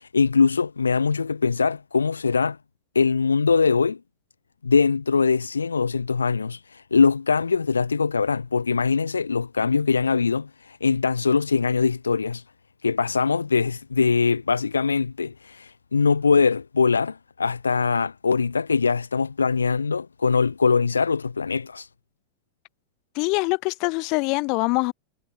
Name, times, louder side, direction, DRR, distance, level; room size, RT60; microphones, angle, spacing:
voice 1, 0.0-2.6 2.9-4.0 4.6-12.4 12.8-21.9, left 5 dB, 75° left, 1.0 m, -22 dB
voice 2, 23.2-24.9, left 29 dB, 45° left, 1.7 m, -24 dB
figure-of-eight pair, 90°, 0 cm